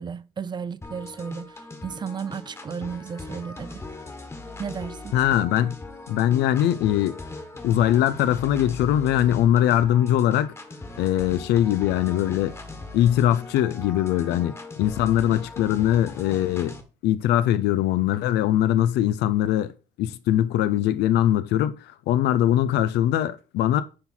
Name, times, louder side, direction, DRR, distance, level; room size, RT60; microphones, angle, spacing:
voice 1, 0.0-3.8 4.6-5.1, right 6 dB, 25° right, 0.5 m, -34 dB
sound 1, 0.8-16.8, left 2 dB, 15° left, 1.4 m, -40 dB
voice 2, 5.1-5.8 6.1-7.2 7.6-10.5 11.0-12.5 12.9-16.8 17.0-19.7 20.0-23.8, left 12 dB, 80° left, 0.7 m, -21 dB
9.8 x 4.0 x 4.4 m
cardioid pair, 110°, 17 cm